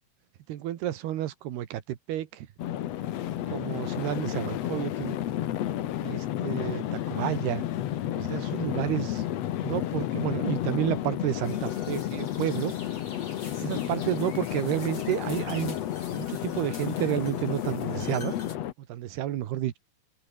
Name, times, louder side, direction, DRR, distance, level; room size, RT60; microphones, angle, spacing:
voice 1, 0.5-2.5 3.5-5.2 6.0-7.6 8.1-9.2 9.6-12.7 13.6-15.8 16.1-18.3 18.9-19.8, right 12 dB, 80° right, 3.5 m, -31 dB
sound 1, 2.6-18.7, left 12 dB, 85° left, 1.4 m, -31 dB
sound 2, 11.4-18.6, left 3 dB, 30° left, 5.9 m, -47 dB
open air
omnidirectional pair, 4.7 m